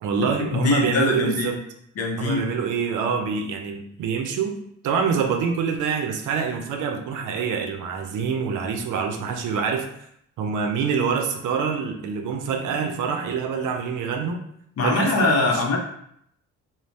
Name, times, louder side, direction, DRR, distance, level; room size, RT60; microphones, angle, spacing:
voice 1, 0.0-1.6 2.2-4.6 4.8-9.9 10.4-14.4 14.8-15.6, right 6 dB, 80° right, 4 dB, 0.5 m, -26 dB
voice 2, 0.5-1.6 2.0-2.5 14.8-15.8, left 3 dB, 55° left, 2 dB, 0.6 m, -22 dB
2.6 x 2.1 x 3.1 m, 0.70 s
cardioid pair, 90°, 30 cm